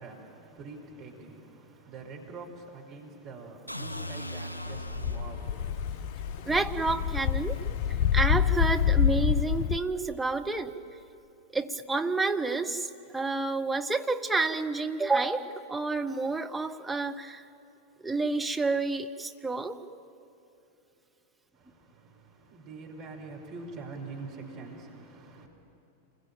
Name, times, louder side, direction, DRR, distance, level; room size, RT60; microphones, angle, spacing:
voice 1, 0.0-5.7 21.5-25.5, right 3 dB, 40° right, 1 dB, 4.9 m, -45 dB
sound 1, 3.7-5.6, equal, 80° left, 1.7 m, -38 dB
sound 2, 4.7-9.8, left 8 dB, 50° left, 0.6 m, -27 dB
voice 2, 6.4-7.6 8.1-10.7 11.5-17.5 18.0-19.8, right 3 dB, 5° right, 4 dB, 1.3 m, -29 dB
29.0 x 21.5 x 9.0 m, 2.9 s
figure-of-eight pair, 90°, 0 cm